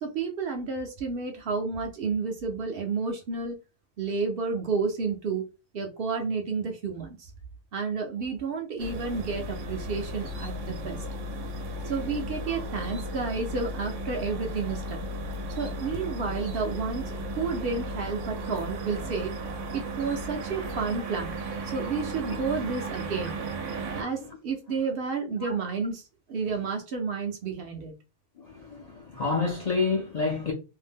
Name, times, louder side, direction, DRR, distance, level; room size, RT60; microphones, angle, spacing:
voice 1, 0.0-3.6 4.0-5.4 5.7-7.3 7.7-11.0 11.8-15.1 15.6-19.3 19.7-21.3 21.6-23.4 23.9-26.0 26.3-27.9, right 4 dB, 60° right, 0.7 m, -31 dB
sound 1, 8.8-24.0, right 1 dB, 90° right, 1.0 m, -35 dB
voice 2, 28.4-30.5, left 4 dB, 50° left, 0.5 m, -29 dB
2.6 x 2.1 x 3.4 m
omnidirectional pair, 1.2 m